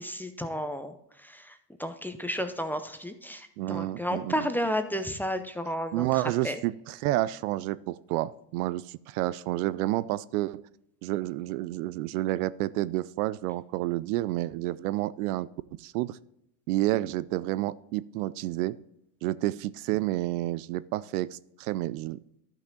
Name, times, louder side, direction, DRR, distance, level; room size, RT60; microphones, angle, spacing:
voice 1, 0.0-6.6, equal, 5° left, 8 dB, 0.6 m, -32 dB
voice 2, 3.6-4.3 5.9-10.6 11.0-16.2 16.7-18.8 19.2-22.2, right 16 dB, 65° right, 18 dB, 0.5 m, -30 dB
12.0 x 5.9 x 3.9 m, 0.81 s
hypercardioid pair, 100°, 49 cm